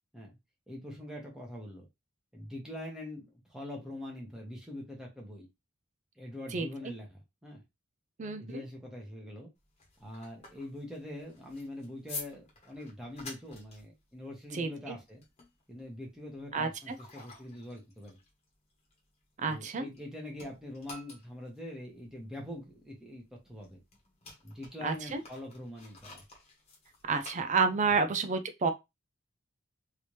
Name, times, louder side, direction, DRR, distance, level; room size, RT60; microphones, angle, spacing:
voice 1, 0.7-1.9 2.3-5.5 6.2-7.6 8.4-9.5 10.0-15.2 15.7-18.2 19.5-23.8 24.4-26.2, left 1 dB, 5° right, 1.1 m, -44 dB
voice 2, 8.2-8.6 14.5-15.0 16.5-17.0 19.4-19.9 24.8-25.2 27.1-28.7, right 4 dB, 35° right, 0.4 m, -30 dB
sound 1, 9.6-20.1 20.3-28.0, left 3 dB, 30° left, 1.1 m, -50 dB
3.3 x 2.8 x 3.1 m
head